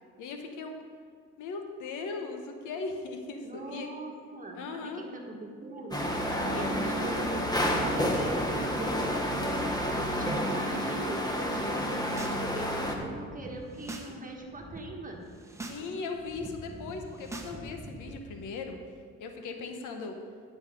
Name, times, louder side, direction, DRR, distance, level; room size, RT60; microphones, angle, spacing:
voice 1, 0.2-0.7 1.4-3.9 4.5-5.0 6.5-6.8 15.7-18.8 19.2-20.1, left 4 dB, 90° left, 5 dB, 1.0 m, -38 dB
voice 2, 3.4-6.1 6.5-9.6 10.0-15.2, right 2 dB, 25° right, 1 dB, 1.5 m, -41 dB
sound 1, 5.9-13.0, equal, 15° left, 1.2 m, -30 dB
sound 2, 12.0-12.4 12.7-14.1 14.4-14.8 15.3-15.8 16.1-18.2, right 2 dB, 10° right, 1.1 m, -44 dB
10.5 x 6.3 x 5.1 m, 2.1 s
cardioid pair, 90°, 30 cm